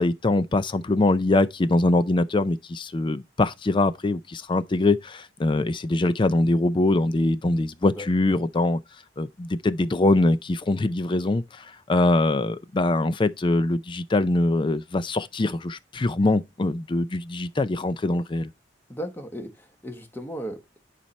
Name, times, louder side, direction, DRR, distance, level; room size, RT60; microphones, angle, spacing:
voice 1, 0.0-8.8 9.2-18.5, left 2 dB, 25° left, 0.4 m, -23 dB
voice 2, 18.9-20.8, equal, 10° left, 1.2 m, -36 dB
10.5 x 4.2 x 3.2 m
head